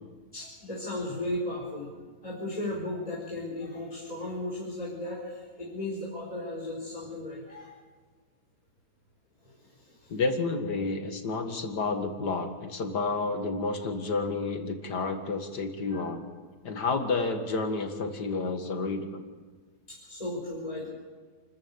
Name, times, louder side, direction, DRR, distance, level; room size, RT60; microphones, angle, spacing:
voice 1, 0.3-1.9 2.2-7.7 9.4-10.2 15.9-16.1 19.9-20.9, left 1 dB, 20° left, -6 dB, 5.2 m, -36 dB
voice 2, 10.1-16.2 16.6-19.2, left 3 dB, 80° left, 6 dB, 2.4 m, -30 dB
29.0 x 14.0 x 7.3 m, 1.4 s
omnidirectional pair, 1.8 m